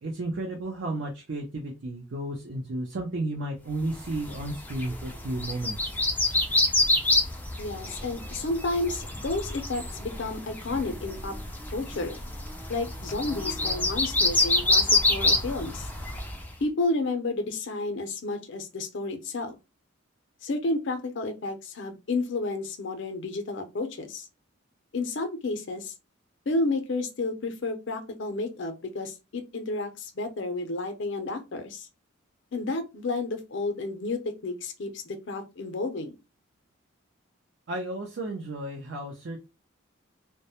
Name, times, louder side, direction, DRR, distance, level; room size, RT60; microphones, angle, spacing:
voice 1, 0.0-5.8 37.7-39.4, right 2 dB, 60° right, 0.5 m, -33 dB
sound 1, 4.0-16.5, left 2 dB, 10° left, 0.3 m, -27 dB
voice 2, 7.6-11.3 11.7-12.2 12.7-15.9 16.6-19.6 20.4-24.3 24.9-25.9 26.5-31.9 32.5-36.2, left 2 dB, 60° left, 0.5 m, -31 dB
2.2 x 2.0 x 2.8 m
head